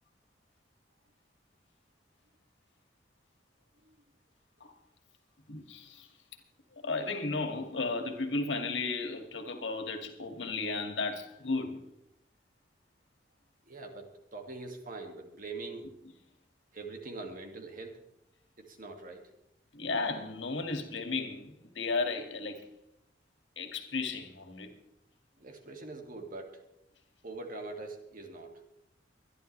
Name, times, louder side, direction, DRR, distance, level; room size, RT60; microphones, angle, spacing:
voice 1, 5.5-6.1 6.7-11.8 19.7-22.6 23.6-24.7, left 3 dB, 85° left, 5 dB, 2.3 m, -34 dB
voice 2, 13.7-15.9 16.7-18.0 18.6-19.3 25.4-26.6 27.2-28.6, right 3 dB, 50° right, 3 dB, 2.3 m, -43 dB
24.0 x 11.0 x 3.4 m, 0.81 s
head